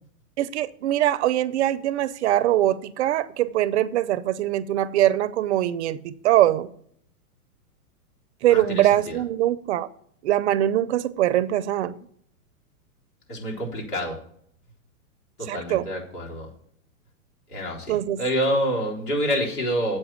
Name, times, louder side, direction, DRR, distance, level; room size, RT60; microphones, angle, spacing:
voice 1, 0.4-6.7 8.4-9.9 10.2-11.9 15.5-15.9 17.9-18.2, right 13 dB, 50° right, 17 dB, 0.6 m, -22 dB
voice 2, 8.5-9.1 13.3-14.2 15.5-16.5 17.5-20.0, equal, 80° left, -1 dB, 4.1 m, -27 dB
7.8 x 6.0 x 7.2 m, 0.63 s
hypercardioid pair, 140°, 45 cm